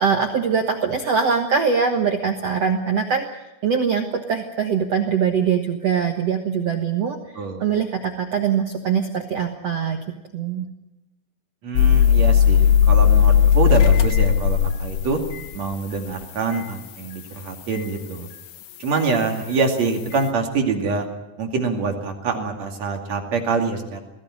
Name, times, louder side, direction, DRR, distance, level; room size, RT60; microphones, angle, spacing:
voice 1, 0.0-3.3 3.6-7.2 7.6-10.0 10.3-10.6, right 6 dB, 65° right, 4 dB, 1.6 m, -22 dB
voice 2, 11.6-15.2 15.5-18.3 18.8-21.1 21.4-24.0, right 4 dB, 45° right, 3 dB, 3.2 m, -25 dB
sound 1, 11.8-16.0 16.5-16.6 18.9-19.0, left 8 dB, 65° left, 2.4 m, -16 dB
21.0 x 16.0 x 9.7 m, 1.0 s
omnidirectional pair, 4.9 m